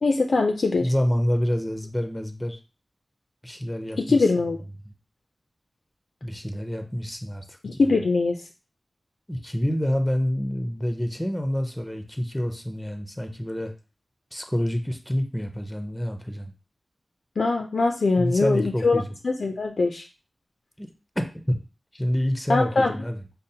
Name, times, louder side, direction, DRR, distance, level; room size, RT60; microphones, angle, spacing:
voice 1, 0.0-0.9 4.0-4.6 7.6-8.4 17.4-20.1 22.5-22.9, left 3 dB, 80° left, 3 dB, 0.3 m, -22 dB
voice 2, 0.8-2.6 3.4-4.3 6.2-7.9 9.3-13.7 14.3-16.5 18.2-19.1 20.8-20.9 21.2-21.6 21.9-23.2, equal, 10° left, 5 dB, 0.5 m, -27 dB
5.1 x 2.0 x 2.7 m, 0.33 s
wide cardioid pair, 75°, 0 cm